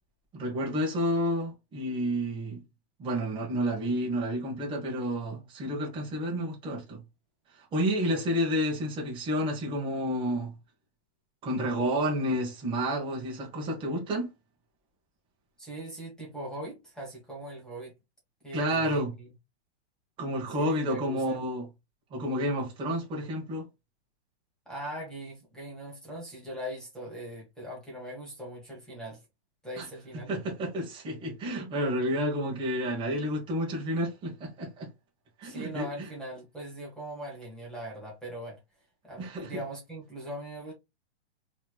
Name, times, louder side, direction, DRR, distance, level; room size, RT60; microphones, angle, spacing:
voice 1, 0.3-2.6 3.0-7.0 7.5-10.5 11.4-14.3 18.5-19.1 20.2-21.6 22.1-23.7 29.8-29.9 30.3-34.9 35.4-36.1 39.2-39.6, equal, 15° right, 1.4 m, -30 dB
voice 2, 15.6-17.9 18.4-19.3 20.6-21.4 24.6-29.2 29.6-30.3 35.4-38.6 39.0-40.7, right 1 dB, ahead, 1.4 m, -40 dB
4.3 x 3.1 x 2.3 m
hypercardioid pair, 155°, 34 cm